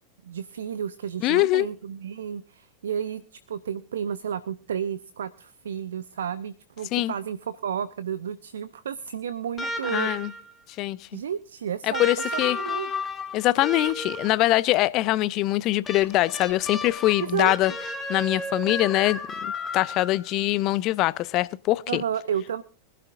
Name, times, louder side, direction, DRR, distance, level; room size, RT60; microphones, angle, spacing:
voice 1, 0.2-10.4 11.1-12.0 12.3-12.9 17.2-17.8 21.9-22.6, right 8 dB, 65° right, 0.5 m, -32 dB
voice 2, 1.2-1.7 6.9-7.1 9.9-10.3 10.8-11.0 12.0-12.6 13.3-17.7 18.1-22.0, left 17 dB, 40° left, 0.5 m, -23 dB
sound 1, 9.6-10.5 11.9-14.5 15.9-20.3 21.7-21.8, left 2 dB, 15° left, 2.2 m, -33 dB
23.5 x 12.0 x 2.5 m
figure-of-eight pair, 90°, 0 cm